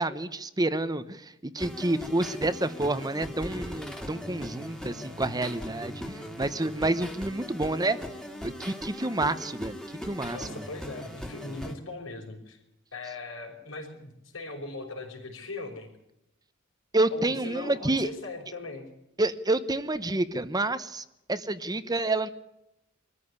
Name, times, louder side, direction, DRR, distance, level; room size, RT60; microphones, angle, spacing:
voice 1, 0.0-8.0 8.4-10.5 16.9-18.1 19.2-22.3, right 2 dB, 20° right, 12 dB, 1.0 m, -29 dB
sound 1, 1.6-11.7, equal, 5° left, 2.2 m, -39 dB
voice 2, 10.3-12.6 12.9-15.9 17.1-18.9, left 2 dB, 75° left, -4 dB, 5.0 m, -39 dB
24.5 x 14.0 x 9.7 m, 0.85 s
head